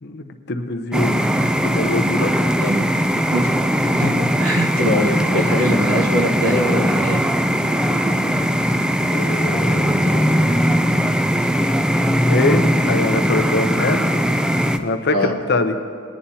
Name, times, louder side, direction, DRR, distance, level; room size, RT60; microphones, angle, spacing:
voice 1, 0.0-1.2 1.6-2.3 9.0-10.2 12.3-14.0 14.8-15.7, left 2 dB, 50° left, 7 dB, 0.7 m, -23 dB
sound 1, 0.9-14.8, equal, 5° right, 0.4 m, -19 dB
voice 2, 3.9-7.2 15.1-15.3, equal, 90° right, 1 dB, 1.6 m, -21 dB
20.5 x 10.0 x 2.8 m, 2.5 s
head